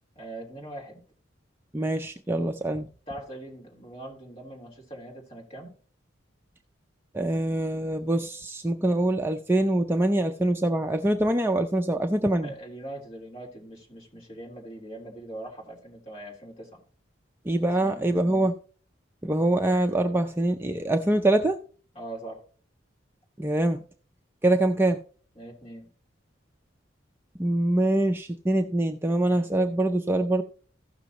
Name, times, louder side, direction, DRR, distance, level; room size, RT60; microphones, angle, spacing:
voice 1, 0.1-1.0 3.1-5.7 12.4-16.8 17.6-18.2 21.9-22.4 25.4-25.9, right 1 dB, 30° left, 3.2 m, -41 dB
voice 2, 1.7-2.9 7.1-12.5 17.4-18.5 19.2-21.6 23.4-23.8 24.4-25.0 27.4-30.4, right 1 dB, 10° right, 0.4 m, -24 dB
15.5 x 6.1 x 2.9 m
head